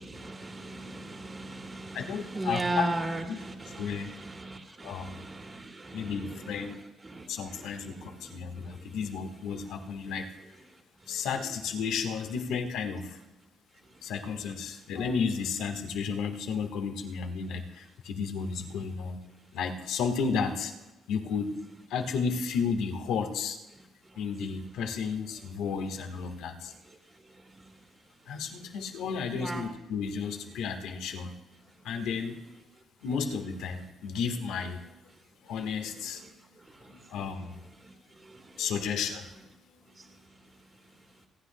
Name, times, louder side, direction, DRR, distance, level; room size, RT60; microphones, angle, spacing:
voice 1, 0.0-6.7 7.0-8.4 8.8-9.0 29.3-29.6 38.6-38.7, right 2 dB, 25° right, 2 dB, 1.9 m, -37 dB
voice 2, 1.9-2.9 3.3-3.4 3.8-4.1 4.8-5.2 5.9-6.8 7.3-10.3 11.1-13.2 14.0-19.2 19.5-20.7 21.1-21.5 21.9-23.6 24.1-26.7 28.3-31.3 31.8-32.4 33.0-34.9 35.4-36.2 36.9-37.6 38.6-39.3, left 6 dB, 90° left, 4 dB, 1.3 m, -33 dB
27.5 x 10.0 x 2.2 m, 1.0 s
cardioid pair, 90°, 0 cm